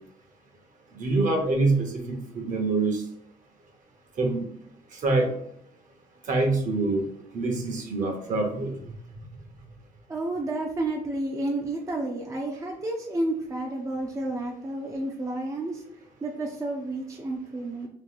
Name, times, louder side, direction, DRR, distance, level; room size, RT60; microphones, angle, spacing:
voice 1, 1.0-3.0 4.2-4.4 4.9-5.3 6.3-7.0 7.3-8.7, right 3 dB, 50° right, 3 dB, 1.0 m, -25 dB
voice 2, 10.1-15.8 16.2-17.9, right 2 dB, 20° right, 0 dB, 0.5 m, -31 dB
3.0 x 2.7 x 3.7 m, 0.70 s
cardioid pair, 110°, 17 cm